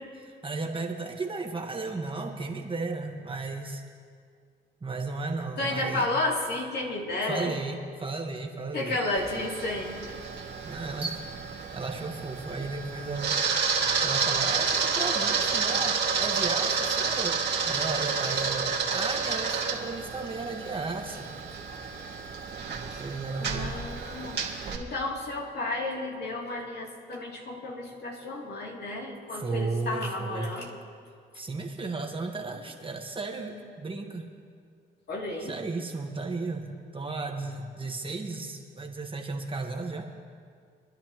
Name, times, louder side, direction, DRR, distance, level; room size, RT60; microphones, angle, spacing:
voice 1, 0.2-3.8 4.8-6.1 7.3-9.0 10.6-11.2 11.7-13.4 14.0-17.4 17.6-21.3 23.0-23.8 29.3-30.5 31.3-34.3 35.4-36.7 36.9-40.1, right 3 dB, 25° right, 1 dB, 1.5 m, -34 dB
voice 2, 5.6-7.5 8.7-10.0 23.4-24.4 24.7-30.8 35.1-35.5, left 2 dB, 55° left, -2 dB, 2.9 m, -32 dB
Camera, 9.2-24.8, right 5 dB, 60° right, 2.1 m, -30 dB
25.0 x 11.0 x 3.1 m, 2.1 s
cardioid pair, 90°, 20 cm